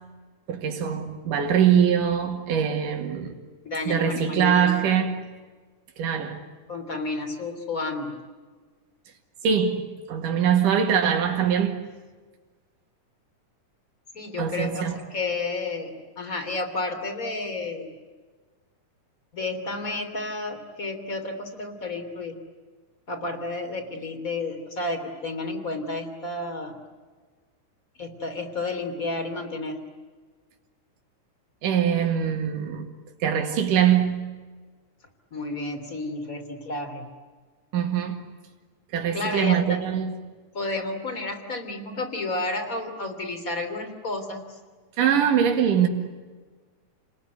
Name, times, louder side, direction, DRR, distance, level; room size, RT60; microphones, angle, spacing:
voice 1, 0.5-3.3 3.9-5.2 6.0-6.4 9.4-11.8 14.4-15.0 31.6-32.9 33.2-34.2 37.7-38.2 38.9-40.1 45.0-45.9, right 8 dB, 90° right, 3.6 m, -23 dB
voice 2, 3.6-4.9 6.7-8.2 14.1-17.9 19.3-22.4 23.1-26.8 28.0-29.8 35.3-37.1 39.1-39.8 40.5-44.4, left 2 dB, 25° left, 3.4 m, -31 dB
30.0 x 20.5 x 9.6 m
omnidirectional pair, 3.6 m